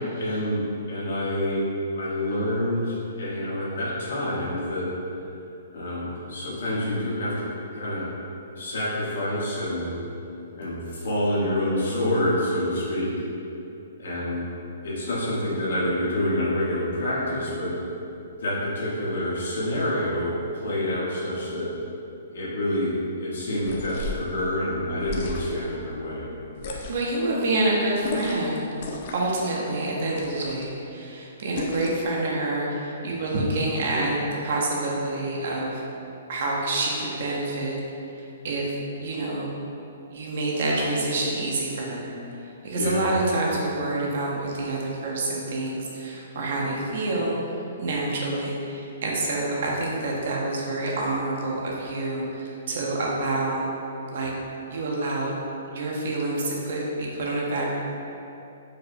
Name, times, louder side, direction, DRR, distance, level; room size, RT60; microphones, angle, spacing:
voice 1, 0.2-0.6 0.9-1.7 1.9-4.9 5.7-7.5 7.7-8.0 8.6-9.9 10.5-13.1 14.0-14.4 14.8-17.7 18.4-21.7 22.3-26.3 42.7-43.1, left 1 dB, 80° left, -7 dB, 1.1 m, -27 dB
sound 1, 23.6-24.3 25.0-25.7 26.5-27.2 28.0-28.5 28.8-29.3 30.1-30.7 31.5-32.1, left 3 dB, 45° left, 0.4 m, -34 dB
voice 2, 26.9-28.7 29.1-35.8 36.3-37.8 38.4-38.6 39.0-39.5 40.1-42.1 42.6-47.4 47.8-53.6 54.1-54.3 54.7-55.3 55.7-57.7, right 2 dB, 60° right, -3 dB, 0.6 m, -27 dB
4.7 x 2.0 x 2.5 m, 2.8 s
hypercardioid pair, 160°, 0 cm